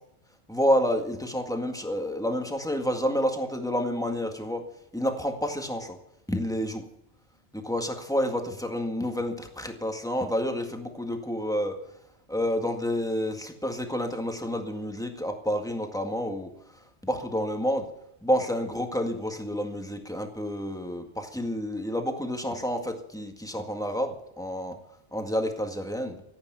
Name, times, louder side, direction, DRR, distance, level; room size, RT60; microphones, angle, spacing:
voice 1, 0.5-4.7 4.9-6.0 6.3-6.8 7.5-11.8 12.3-16.5 17.0-17.9 18.2-24.8 25.1-26.2, equal, 5° left, 4 dB, 1.8 m, -29 dB
15.5 x 8.8 x 8.1 m, 0.77 s
omnidirectional pair, 1.1 m